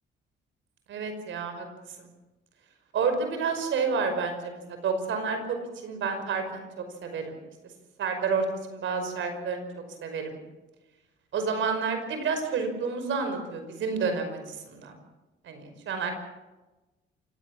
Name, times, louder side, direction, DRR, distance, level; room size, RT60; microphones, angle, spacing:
voice 1, 0.9-1.7 2.0-2.1 2.9-5.6 5.8-7.4 8.0-9.6 10.0-10.4 11.3-14.9 15.4-16.1, right 5 dB, 75° right, 7 dB, 5.5 m, -30 dB
28.5 x 17.0 x 7.3 m, 1.1 s
cardioid pair, 90°, 20 cm